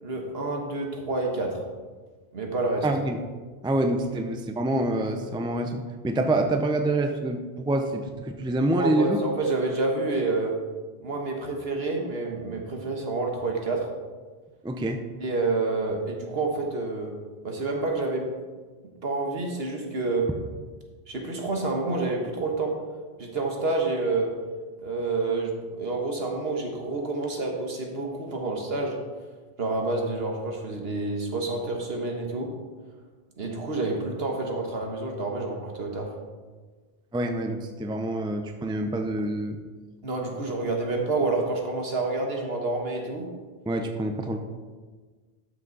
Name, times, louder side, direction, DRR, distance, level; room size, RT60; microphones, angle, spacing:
voice 1, 0.0-1.6 2.3-2.9 8.7-10.6 11.0-13.9 15.2-17.1 17.4-18.2 19.0-20.3 21.1-22.7 23.2-24.3 24.8-29.0 29.6-32.5 33.4-36.1 40.0-43.3, right 3 dB, 70° right, 1 dB, 1.6 m, -28 dB
voice 2, 2.8-3.2 3.6-9.2 14.6-15.0 37.1-39.6 43.7-44.4, right 1 dB, 5° right, 5 dB, 0.5 m, -26 dB
12.5 x 6.1 x 4.0 m, 1.4 s
omnidirectional pair, 1.1 m